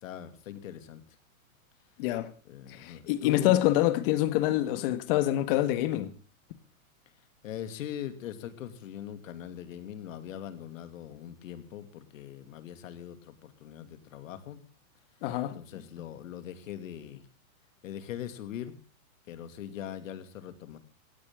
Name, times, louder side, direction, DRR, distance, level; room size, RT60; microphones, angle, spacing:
voice 1, 0.0-1.2 2.4-3.6 7.4-14.6 15.5-17.3 17.8-18.8 19.3-20.8, left 10 dB, 65° left, 2.7 m, -41 dB
voice 2, 2.0-2.3 2.8-6.1 15.2-15.6, left 14 dB, 40° left, 1.6 m, -26 dB
17.5 x 16.5 x 3.7 m
hypercardioid pair, 150°, 43 cm